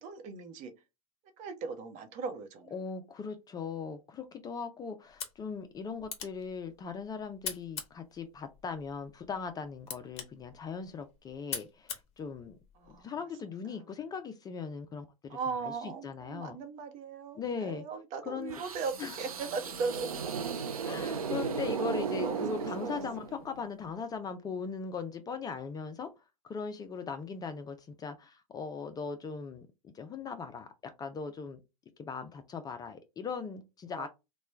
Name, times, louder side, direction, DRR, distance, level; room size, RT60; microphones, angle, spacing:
voice 1, 0.0-0.7 1.4-2.7 12.8-13.1 13.4-13.5 15.3-20.2 21.0-21.2 21.9-22.7 33.9-34.1, right 5 dB, 45° right, 0.8 m, -38 dB
voice 2, 2.7-12.6 13.0-15.4 15.6-16.6 17.4-17.8 18.3-18.6 19.0-19.2 20.8-26.1 26.4-31.6 32.0-34.1, left 5 dB, 20° left, 0.4 m, -39 dB
sound 1, 5.0-13.0, left 7 dB, 35° left, 0.9 m, -45 dB
sound 2, 18.5-23.6, right 6 dB, 90° right, 0.5 m, -35 dB
3.0 x 2.2 x 3.3 m
hypercardioid pair, 90°, 18 cm